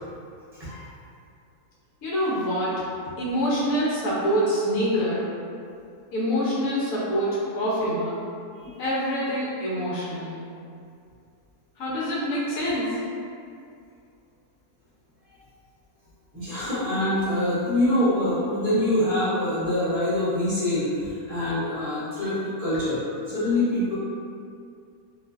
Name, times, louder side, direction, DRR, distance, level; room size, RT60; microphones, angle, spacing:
voice 1, 2.0-2.9 3.2-5.3 6.1-8.2 8.8-10.4 11.8-13.0, equal, 70° left, -8 dB, 0.9 m, -25 dB
voice 2, 16.3-24.0, left 1 dB, 30° right, -13 dB, 0.8 m, -25 dB
2.5 x 2.4 x 2.2 m, 2.4 s
omnidirectional pair, 1.7 m